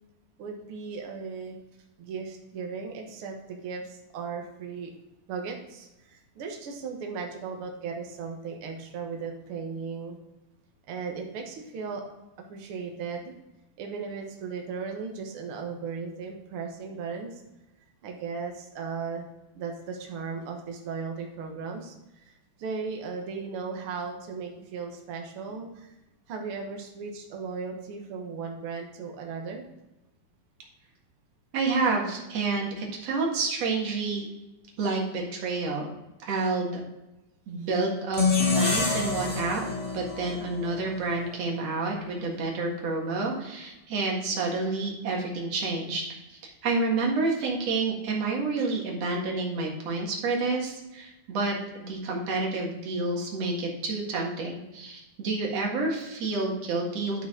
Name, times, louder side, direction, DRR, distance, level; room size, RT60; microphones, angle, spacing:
voice 1, 0.4-1.5 2.0-4.9 5.3-10.2 10.9-12.0 12.4-13.3 13.8-17.4 18.0-19.2 19.5-25.9 26.3-29.6 37.6-37.7, right 5 dB, 85° right, 2 dB, 1.2 m, -36 dB
voice 2, 31.5-34.3 34.8-35.9 36.2-36.8 37.5-38.2 38.5-39.6 39.9-57.3, right 3 dB, 50° right, 0 dB, 2.3 m, -29 dB
sound 1, 38.1-41.3, left 4 dB, 55° left, 0.3 m, -27 dB
11.0 x 5.8 x 3.7 m, 0.97 s
omnidirectional pair, 4.3 m